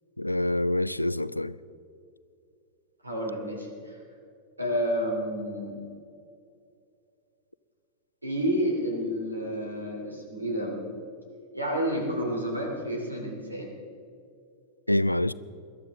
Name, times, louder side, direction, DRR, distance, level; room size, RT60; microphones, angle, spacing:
voice 1, 0.2-1.6 14.9-15.3, left 1 dB, 85° left, 18 dB, 0.3 m, -26 dB
voice 2, 3.0-4.0 4.6-5.8 8.2-10.8 11.5-13.7, equal, 80° right, 1 dB, 3.0 m, -30 dB
21.5 x 12.5 x 3.6 m, 2.5 s
figure-of-eight pair, 90°, 0 cm